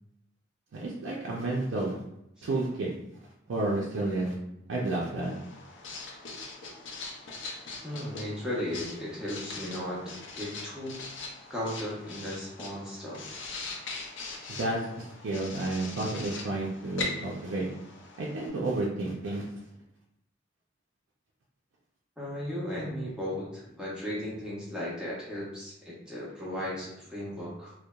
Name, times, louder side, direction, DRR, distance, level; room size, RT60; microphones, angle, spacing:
voice 1, 0.7-2.0 2.4-2.9 3.5-4.3 4.7-5.3 6.7-6.8 14.5-17.7 18.2-19.5, right 2 dB, 75° right, -4 dB, 0.4 m, -31 dB
Writing, 5.2-18.5, left 3 dB, 65° left, 0.5 m, -41 dB
voice 2, 7.8-11.0 11.5-13.4 22.2-27.7, equal, 5° right, -7 dB, 0.6 m, -36 dB
2.8 x 2.1 x 2.2 m, 0.81 s
head